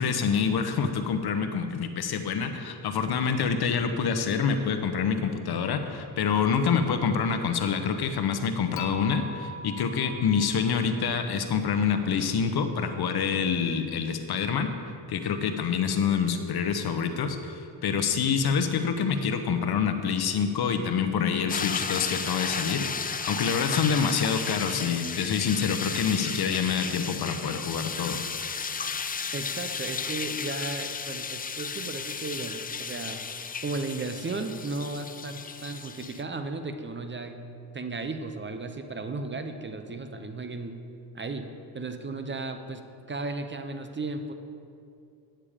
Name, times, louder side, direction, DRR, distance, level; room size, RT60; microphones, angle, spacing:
voice 1, 0.0-14.7 15.1-28.2, left 6 dB, 60° left, 8 dB, 0.9 m, -27 dB
Dishes pots and pans / Chink clink, 8.8-11.9, left 3 dB, 80° left, 1.0 m, -41 dB
sound 1, 21.5-36.2, left 5 dB, 20° left, 0.4 m, -34 dB
voice 2, 29.3-33.2 33.6-37.4 37.7-40.8 41.1-41.5 41.7-44.3, right 3 dB, 25° right, 7 dB, 0.7 m, -35 dB
9.0 x 8.7 x 5.0 m, 2.5 s
cardioid pair, 90°, 44 cm